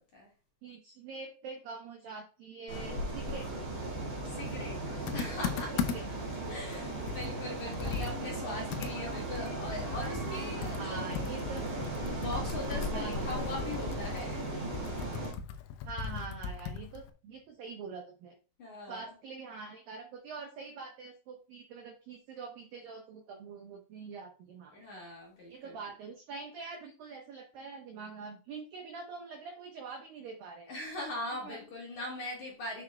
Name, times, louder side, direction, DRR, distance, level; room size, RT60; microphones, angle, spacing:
voice 1, 0.6-3.5 5.9-6.0 6.8-7.0 7.7-7.9 10.8-11.6 12.9-13.4 15.8-18.4 18.9-24.9 25.5-30.7 31.4-31.6, right 4 dB, 80° right, 2.0 m, -44 dB
sound 1, 2.7-15.3, right 1 dB, 35° right, 1.8 m, -37 dB
voice 2, 4.3-4.8 5.1-5.9 6.5-11.6 12.2-14.5 18.6-19.1 24.7-25.8 30.7-32.8, left 1 dB, 50° left, 2.7 m, -41 dB
Computer keyboard, 5.1-6.2 6.7-6.8 7.1-10.4 10.6-17.1, left 7 dB, 85° left, 3.3 m, -38 dB
9.4 x 6.3 x 2.3 m
omnidirectional pair, 5.5 m